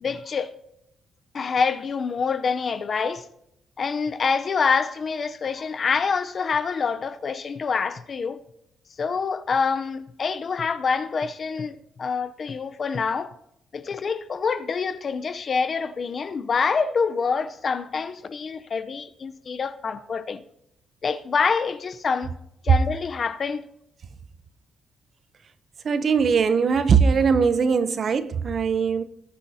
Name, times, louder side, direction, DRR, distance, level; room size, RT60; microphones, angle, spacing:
voice 1, 0.0-0.5 1.3-3.3 3.8-8.4 9.0-13.3 13.7-20.4 21.0-22.3 22.6-23.6, left 5 dB, 35° left, 0.6 m, -26 dB
voice 2, 25.8-29.0, right 6 dB, 45° right, 0.6 m, -20 dB
20.5 x 10.0 x 2.8 m
cardioid pair, 150°, 0 cm